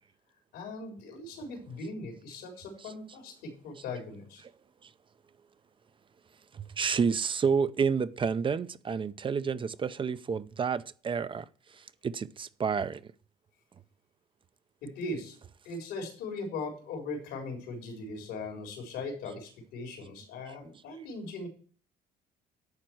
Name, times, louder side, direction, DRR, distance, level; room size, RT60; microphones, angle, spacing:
voice 1, 0.5-4.4 14.8-15.4 15.6-21.5, left 3 dB, 90° left, 3.9 m, -39 dB
voice 2, 6.5-11.5 11.8-13.0, right 6 dB, 30° right, 0.5 m, -30 dB
10.5 x 4.4 x 7.8 m
cardioid pair, 110°, 17 cm